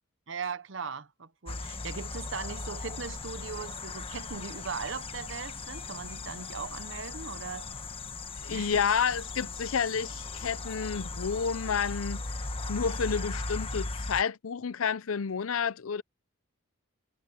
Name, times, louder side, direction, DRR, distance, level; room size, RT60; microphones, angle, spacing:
voice 1, 0.3-7.7 8.5-8.8, right 5 dB, 65° right, 0.9 m, -39 dB
sound 1, 1.5-14.2, left 3 dB, 25° left, 1.1 m, -38 dB
voice 2, 8.4-12.2 12.7-16.0, left 6 dB, 80° left, 0.6 m, -30 dB
head